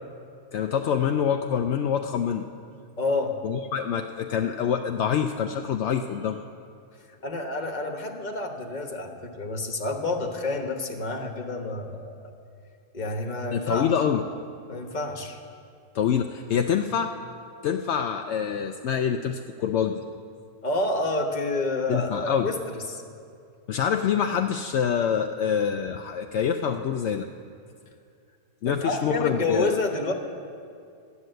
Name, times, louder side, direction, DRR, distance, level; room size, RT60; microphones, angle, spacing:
voice 1, 0.5-2.5 3.4-6.4 13.5-14.2 15.9-17.1 17.6-20.0 21.9-22.5 23.7-27.3 28.6-29.7, left 8 dB, 70° left, 5 dB, 0.6 m, -26 dB
voice 2, 3.0-3.3 7.2-12.3 12.9-13.9 14.7-15.4 20.6-23.0 28.7-30.1, left 2 dB, 30° left, 2 dB, 1.2 m, -29 dB
13.0 x 9.6 x 7.8 m, 2.4 s
omnidirectional pair, 1.6 m